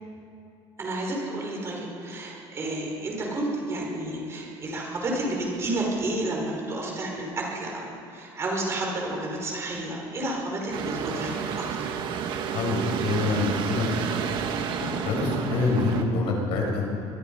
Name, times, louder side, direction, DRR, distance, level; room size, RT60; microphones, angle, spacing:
voice 1, 0.8-11.9, right 1 dB, 25° right, -1 dB, 5.3 m, -31 dB
sound 1, 10.7-16.0, right 7 dB, 55° right, 1.7 m, -30 dB
voice 2, 12.5-14.4 14.8-16.9, left 3 dB, 65° left, 0 dB, 6.1 m, -26 dB
25.5 x 22.0 x 5.6 m, 2.7 s
cardioid pair, 165°, 10 cm